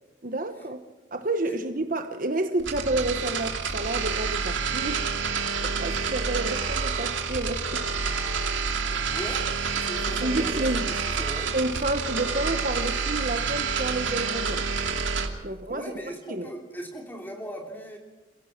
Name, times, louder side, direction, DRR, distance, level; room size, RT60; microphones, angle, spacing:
voice 1, 0.2-0.8 1.1-5.0 5.6-7.8 8.8-9.1 10.2-10.8 11.5-14.7 15.4-15.9 16.3-16.5, right 2 dB, 45° right, 7 dB, 1.1 m, -30 dB
sound 1, 2.6-15.3, right 5 dB, 80° right, 2.6 m, -28 dB
voice 2, 9.1-9.5 9.8-11.5 15.4-18.0, equal, 10° left, 1 dB, 3.4 m, -39 dB
29.0 x 16.5 x 6.0 m, 1.1 s
head